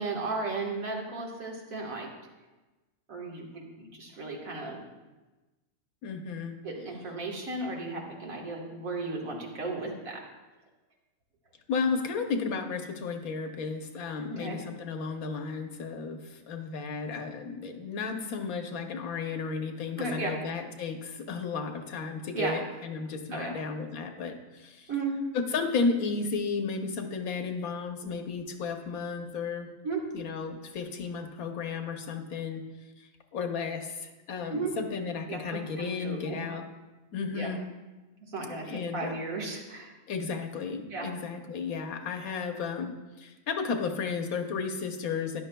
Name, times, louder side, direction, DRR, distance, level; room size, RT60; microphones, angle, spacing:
voice 1, 0.0-2.1 3.1-4.8 6.6-10.2 14.3-14.6 20.0-20.4 22.3-22.6 23.3-23.6 24.9-25.1 29.8-30.0 34.5-34.7 35.3-36.4 37.3-37.5 38.3-39.9 40.9-41.1, right 3 dB, 75° right, -1 dB, 1.9 m, -35 dB
voice 2, 6.0-6.5 11.7-24.9 25.3-29.7 30.1-32.6 33.0-36.7 37.1-37.6 38.6-39.2 40.1-45.4, left 5 dB, 90° left, 5 dB, 1.4 m, -33 dB
13.0 x 10.5 x 2.3 m, 1.2 s
omnidirectional pair, 1.5 m